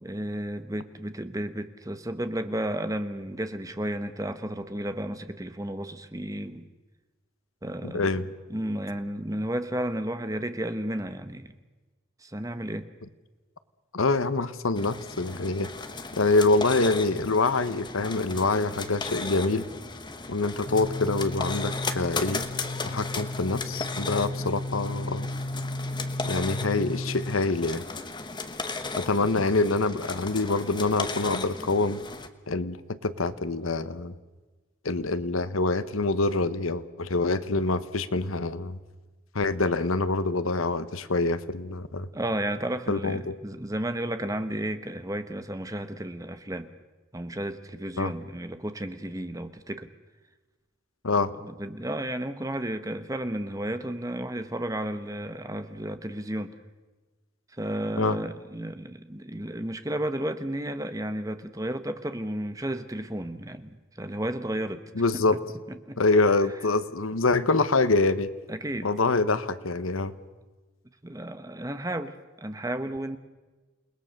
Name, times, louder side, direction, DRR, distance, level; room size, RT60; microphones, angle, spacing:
voice 1, 0.0-6.7 7.6-8.1 8.5-11.5 12.2-12.9 42.1-46.7 47.1-49.9 51.4-56.5 57.6-64.8 65.1-65.4 65.7-66.0 68.5-68.9 71.0-73.2, right 1 dB, 15° right, 9 dB, 1.0 m, -33 dB
voice 2, 7.8-8.3 13.9-15.7 16.2-19.7 20.3-22.4 22.8-25.3 26.2-27.8 29.0-32.0 32.5-34.1 34.8-38.8 39.3-42.1 42.9-43.3 48.0-48.1 51.0-51.3 58.0-58.2 64.9-65.4 66.0-68.3 68.8-70.1, left 3 dB, 85° left, 13 dB, 1.1 m, -25 dB
sound 1, 14.8-32.3, left 3 dB, 20° left, 1.1 m, -36 dB
sound 2, 20.6-27.4, left 1 dB, 40° left, 1.4 m, -34 dB
28.5 x 19.5 x 6.6 m, 1.2 s
head